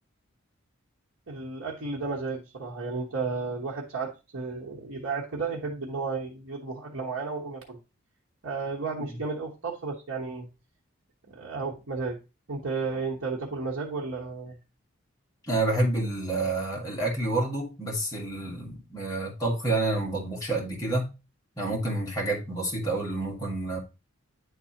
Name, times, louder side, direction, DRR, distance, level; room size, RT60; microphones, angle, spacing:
voice 1, 1.3-7.8 8.4-10.5 11.3-12.2 12.5-14.5, right 4 dB, 70° right, 1.1 m, -33 dB
voice 2, 15.5-21.1 21.6-23.8, right 2 dB, 15° left, 1.6 m, -28 dB
9.4 x 3.9 x 2.8 m
head